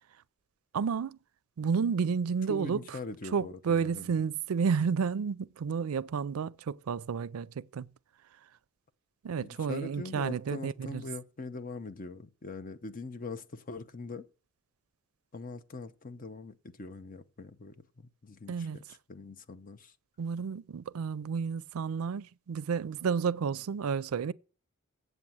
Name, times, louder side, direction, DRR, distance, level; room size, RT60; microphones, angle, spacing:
voice 1, 0.7-1.2 1.6-3.0 3.3-7.9 9.2-11.0 18.5-18.8 20.2-24.3, right 6 dB, 90° right, 0.4 m, -31 dB
voice 2, 2.5-4.2 9.4-14.3 15.3-19.9, left 3 dB, 40° left, 0.7 m, -42 dB
8.1 x 7.2 x 7.8 m
head